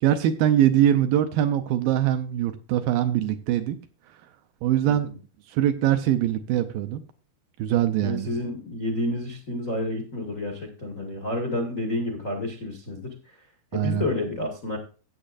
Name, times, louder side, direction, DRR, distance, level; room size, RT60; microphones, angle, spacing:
voice 1, 0.0-3.8 4.6-5.1 5.5-7.0 7.6-8.3 13.7-14.0, right 11 dB, 80° right, 9 dB, 2.2 m, -22 dB
voice 2, 8.0-13.4 13.7-14.8, left 1 dB, 75° left, 1 dB, 0.7 m, -30 dB
15.0 x 8.1 x 2.5 m, 0.35 s
omnidirectional pair, 4.5 m